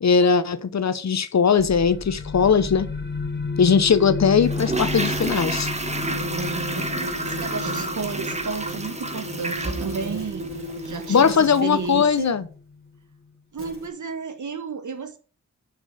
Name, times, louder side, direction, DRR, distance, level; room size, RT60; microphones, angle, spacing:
voice 1, 0.0-2.9 3.6-5.7 11.1-12.4, left 6 dB, 65° left, 0.8 m, -19 dB
sound 1, 1.6-13.0, left 4 dB, 35° left, 1.0 m, -33 dB
Toilet flush, 4.4-11.5 11.8-11.9, right 2 dB, 20° right, 1.3 m, -31 dB
sound 2, 5.9-12.3 13.6-13.9, right 1 dB, 45° right, 3.0 m, -34 dB
voice 2, 7.1-10.5 10.8-12.4 13.5-15.2, right 5 dB, 75° right, 1.3 m, -32 dB
6.4 x 6.2 x 6.4 m
cardioid pair, 50°, 30 cm